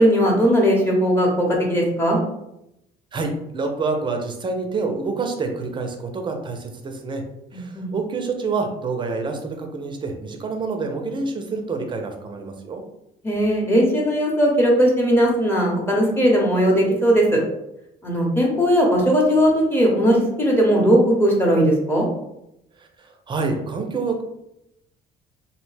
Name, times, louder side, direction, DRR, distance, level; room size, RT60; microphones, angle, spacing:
voice 1, 0.0-2.2 7.5-7.9 13.2-17.4 18.0-22.1, equal, 15° left, -2 dB, 0.9 m, -18 dB
voice 2, 3.1-7.2 7.5-12.8 22.8-24.2, right 4 dB, 30° right, 4 dB, 0.5 m, -27 dB
2.8 x 2.1 x 3.2 m, 0.83 s
cardioid pair, 110°, 17 cm